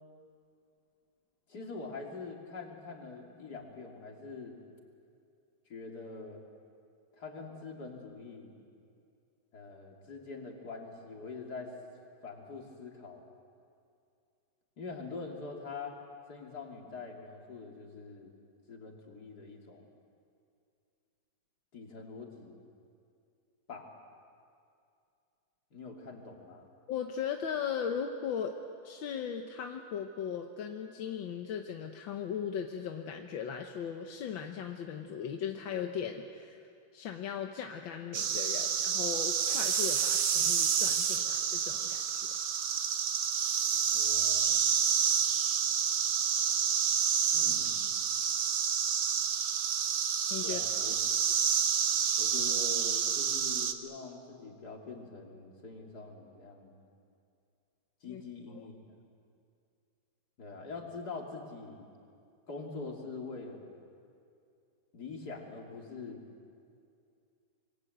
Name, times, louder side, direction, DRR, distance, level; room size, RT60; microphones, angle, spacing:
voice 1, 1.5-4.6 5.7-6.4 7.2-8.5 9.5-11.7 12.2-13.2 14.8-16.0 16.3-18.3 18.7-19.9 21.7-22.6 23.7-23.9 25.7-26.7 43.9-44.6 47.3-48.0 50.4-51.0 52.2-56.9 58.0-58.7 60.4-61.9 62.5-63.7 64.9-66.2, left 4 dB, 55° left, 1 dB, 3.4 m, -44 dB
voice 2, 26.9-28.6 28.8-42.4 50.3-50.6 58.1-58.2 58.5-58.7, left 7 dB, 80° left, 4 dB, 1.8 m, -38 dB
sound 1, 38.1-53.7, right 7 dB, 70° right, 1.8 m, -29 dB
26.5 x 23.0 x 8.0 m, 2.4 s
omnidirectional pair, 2.1 m